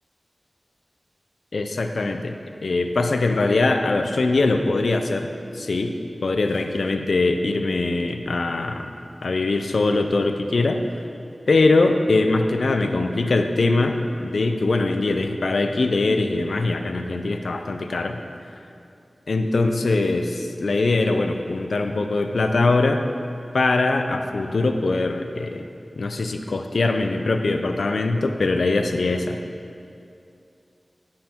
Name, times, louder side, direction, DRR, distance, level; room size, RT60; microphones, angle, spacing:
voice 1, 1.5-2.3 2.6-5.9 6.2-8.9 9.2-10.8 11.5-18.2 19.3-23.0 23.5-25.7 26.0-29.4, left 3 dB, 85° left, 6 dB, 0.5 m, -22 dB
9.8 x 5.7 x 4.4 m, 2.5 s
cardioid pair, 45°, 0 cm